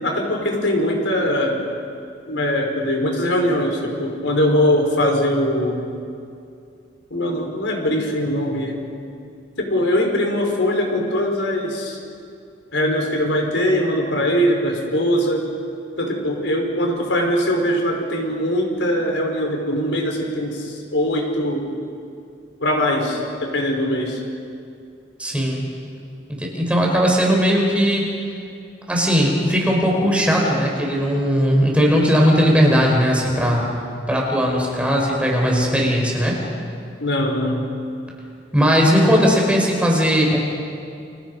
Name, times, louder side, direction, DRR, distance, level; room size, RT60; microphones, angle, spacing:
voice 1, 0.0-1.6 2.3-5.8 7.1-8.8 9.6-12.0 12.7-15.5 16.0-21.7 22.6-24.2 37.0-37.7, equal, 80° left, 1 dB, 4.8 m, -21 dB
voice 2, 25.2-25.6 26.4-28.1 28.9-33.6 34.1-36.4 38.5-40.4, equal, 5° right, -2 dB, 5.0 m, -18 dB
29.5 x 29.0 x 5.5 m, 2.5 s
head